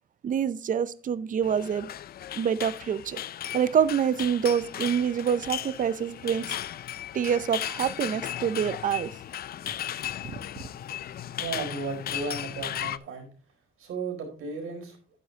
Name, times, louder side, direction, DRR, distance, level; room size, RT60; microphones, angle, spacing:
voice 1, 0.2-1.9 2.4-3.2 3.5-6.6 7.1-9.1, right 8 dB, 40° right, 0.5 m, -26 dB
sound 1, 1.4-13.0, left 11 dB, 45° left, 0.4 m, -36 dB
voice 2, 11.4-13.3 13.8-15.0, right 4 dB, 85° right, 4.5 m, -34 dB
11.0 x 10.0 x 2.8 m
cardioid pair, 175°, 21 cm